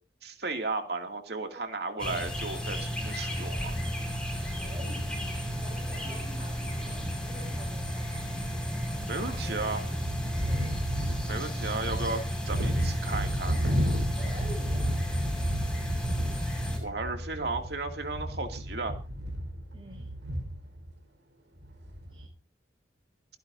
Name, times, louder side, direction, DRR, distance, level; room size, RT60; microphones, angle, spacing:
voice 1, 0.2-3.7 9.1-9.8 11.3-13.6 16.8-19.0, right 3 dB, 60° right, 4 dB, 2.4 m, -34 dB
sound 1, 2.0-16.8, equal, 5° left, 5.6 m, -34 dB
sound 2, 4.0-5.4 5.9-6.0 6.2-6.3 7.1-7.2 7.4-20.9 21.6-22.3, equal, 80° right, 4.5 m, -33 dB
voice 2, 4.5-8.5 8.8-10.7 14.2-15.0 19.7-20.1 22.1-22.2, equal, 30° right, 0 dB, 6.1 m, -48 dB
29.5 x 10.5 x 2.7 m, 0.34 s
head